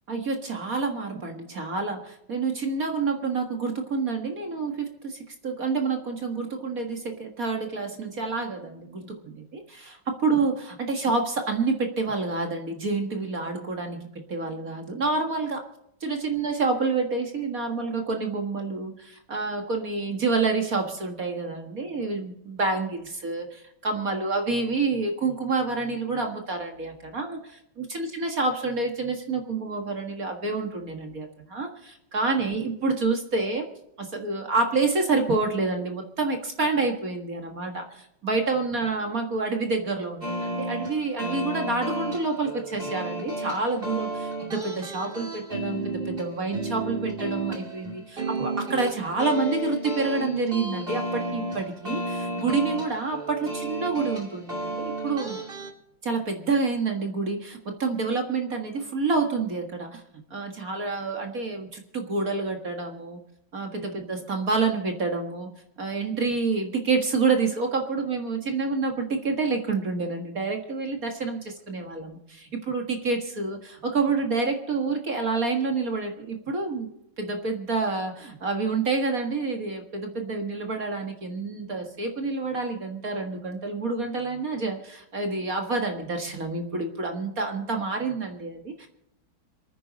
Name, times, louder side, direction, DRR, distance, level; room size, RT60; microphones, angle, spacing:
voice 1, 0.1-15.7 16.0-33.7 34.0-55.4 56.0-63.2 63.5-65.5 65.8-76.9 77.2-88.9, right 3 dB, 45° right, 3 dB, 2.1 m, -28 dB
sound 1, 40.2-55.7, right 2 dB, 30° right, 2.6 m, -32 dB
28.0 x 9.6 x 4.1 m, 0.81 s
omnidirectional pair, 2.1 m